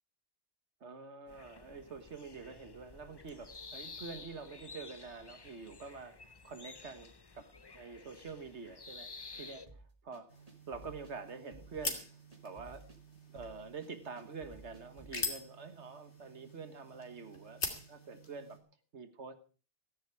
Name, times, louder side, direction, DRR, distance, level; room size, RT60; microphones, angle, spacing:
voice 1, 0.8-7.5 7.7-9.6 10.0-12.2 12.4-12.9 13.3-18.6 18.9-19.3, right 4 dB, 75° right, 1.8 m, -47 dB
Starlings leaving backyard, 1.3-9.7, left 4 dB, 25° left, 0.7 m, -52 dB
sound 1, 9.7-15.2, right 2 dB, 35° right, 2.1 m, -56 dB
sound 2, 10.3-18.6, left 3 dB, 75° left, 2.8 m, -44 dB
15.0 x 14.5 x 4.8 m
omnidirectional pair, 1.2 m